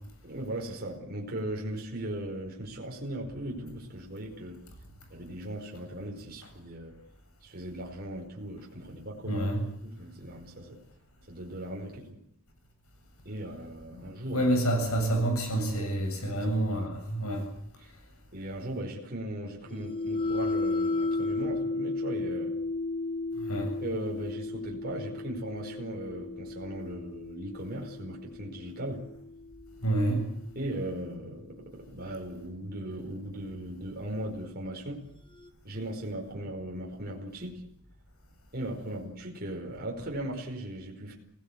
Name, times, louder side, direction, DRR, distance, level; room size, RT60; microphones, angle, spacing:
voice 1, 0.2-4.6 5.1-6.9 7.4-9.4 9.8-10.8 11.3-12.2 13.2-14.5 16.3-16.9 17.8-17.9 18.3-22.6 23.8-29.1 30.5-35.1 35.6-37.6 38.5-41.1, right 1 dB, 45° right, 4.9 m, -38 dB
voice 2, 9.3-9.6 13.9-14.0 14.3-17.5 23.4-23.7 29.8-30.3, right 1 dB, 85° left, 7.7 m, -28 dB
Vibraphone Bow F-F, 19.7-29.7, left 3 dB, 25° left, 1.9 m, -34 dB
28.5 x 18.5 x 8.6 m
head